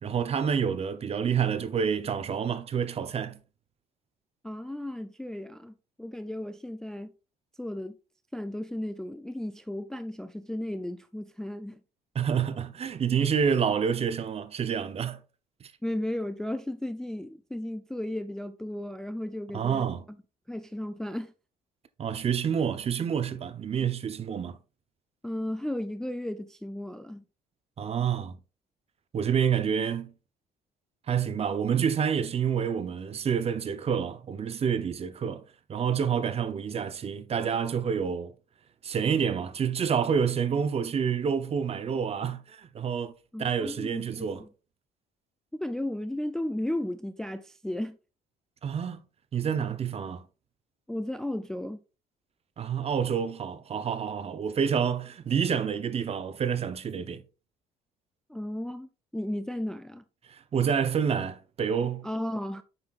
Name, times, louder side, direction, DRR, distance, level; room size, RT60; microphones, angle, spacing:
voice 1, 0.0-3.4 12.1-15.2 15.6-15.7 19.5-20.0 22.0-24.6 27.8-28.4 29.1-30.1 31.1-35.4 35.7-38.3 38.8-43.1 43.4-44.4 48.6-49.0 49.3-50.2 52.6-57.2 60.3-62.1, right 7 dB, 35° right, 0.7 m, -28 dB
voice 2, 4.4-7.1 7.6-8.0 8.3-11.8 15.8-19.9 20.5-21.3 25.2-27.2 43.3-44.5 45.5-48.0 50.9-51.8 58.3-60.0 62.0-62.6, left 1 dB, 5° left, 0.3 m, -34 dB
7.9 x 5.8 x 2.4 m
cardioid pair, 110°, 17 cm